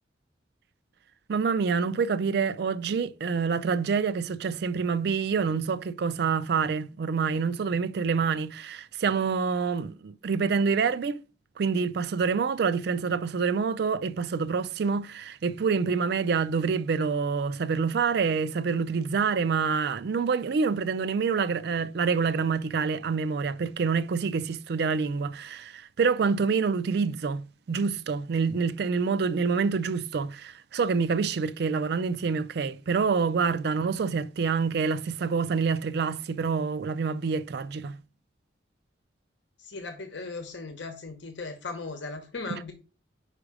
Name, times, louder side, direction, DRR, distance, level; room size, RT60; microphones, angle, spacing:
voice 1, 1.3-11.2 11.6-38.0 42.5-42.6, right 5 dB, 60° right, 0.4 m, -27 dB
voice 2, 39.6-42.7, left 3 dB, 75° left, 0.9 m, -37 dB
4.9 x 4.8 x 4.8 m
head